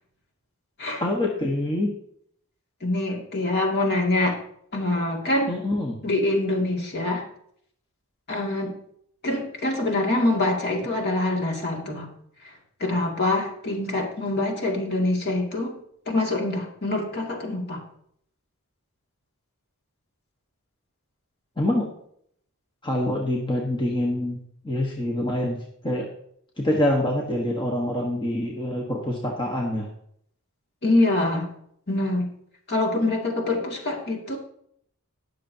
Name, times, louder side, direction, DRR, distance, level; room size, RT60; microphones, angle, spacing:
voice 1, 1.0-1.9 5.5-6.0 21.6-21.9 22.8-25.6 25.8-26.1 26.6-29.9, left 1 dB, 20° left, -1 dB, 1.2 m, -25 dB
voice 2, 2.8-4.4 4.7-5.6 6.0-7.2 8.3-8.8 9.2-12.1 12.4-12.5 12.8-15.7 16.1-17.8 30.8-31.5 31.9-32.3 32.7-34.4, left 2 dB, 50° left, -1 dB, 2.3 m, -25 dB
19.5 x 6.7 x 2.8 m, 0.69 s
head